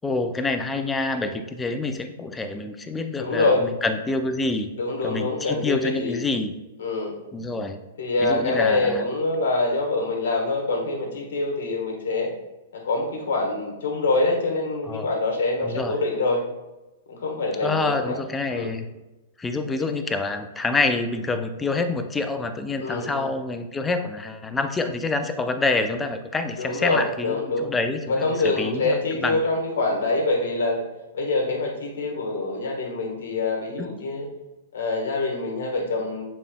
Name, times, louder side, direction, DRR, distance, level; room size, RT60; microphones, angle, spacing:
voice 1, 0.0-4.7 5.0-6.5 7.3-7.8 8.2-9.1 14.9-15.1 15.6-16.0 17.6-18.9 19.4-29.4 33.8-33.9, left 3 dB, 15° left, 8 dB, 0.4 m, -27 dB
voice 2, 3.2-3.6 4.8-6.2 6.8-7.1 8.0-12.3 12.8-16.4 17.1-18.1 18.5-18.7 22.8-23.2 26.6-27.7 28.1-30.8 31.1-34.3 34.7-36.2, left 2 dB, 75° left, 1 dB, 1.3 m, -25 dB
7.1 x 3.2 x 2.3 m, 1.0 s
hypercardioid pair, 125°, 0 cm